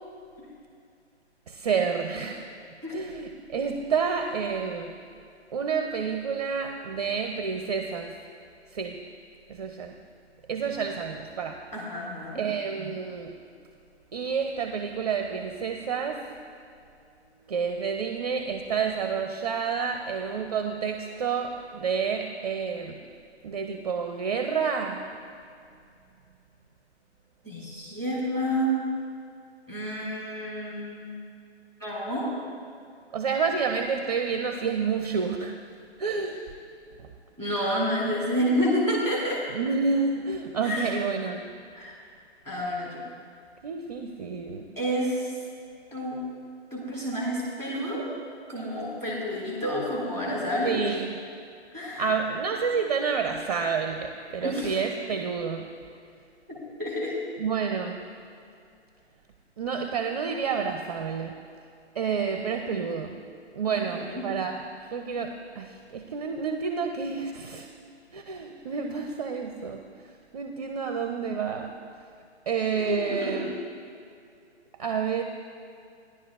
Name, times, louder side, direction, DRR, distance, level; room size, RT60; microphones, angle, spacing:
voice 1, 1.5-2.5 2.9-4.9 5.5-8.1 8.7-9.0 9.5-10.0 10.5-11.6 12.3-13.3 14.1-16.3 17.5-23.0 23.4-25.0 33.1-35.6 36.0-36.5 37.0-37.1 39.5-41.4 43.6-44.7 50.6-51.1 52.0-55.7 57.4-58.0 59.6-61.4 62.0-63.2 63.5-64.6 64.9-67.7 68.1-69.8 70.3-71.7 72.5-73.5 74.8-75.2, right 6 dB, 35° right, 5 dB, 0.5 m, -29 dB
voice 2, 11.7-12.5 27.4-28.8 29.7-31.2 31.8-32.3 37.4-39.4 40.6-41.0 41.8-42.0 42.5-43.0 44.8-45.3 45.9-46.2 46.7-48.1 48.5-50.9 51.7-52.1 54.4-54.8 56.5-57.2 63.9-64.3 72.7-73.5, equal, 10° left, -5 dB, 1.8 m, -29 dB
16.5 x 10.5 x 2.3 m, 2.4 s
figure-of-eight pair, 135°, 35 cm